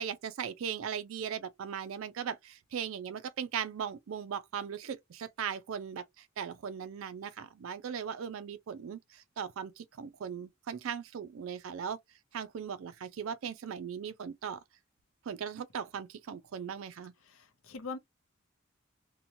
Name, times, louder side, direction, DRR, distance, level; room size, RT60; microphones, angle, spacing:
voice 1, 0.0-12.0 12.3-14.6 15.3-17.1, right 7 dB, 75° right, 0.4 m, -38 dB
voice 2, 17.3-18.0, left 4 dB, 80° left, 0.6 m, -42 dB
2.8 x 2.2 x 2.6 m
head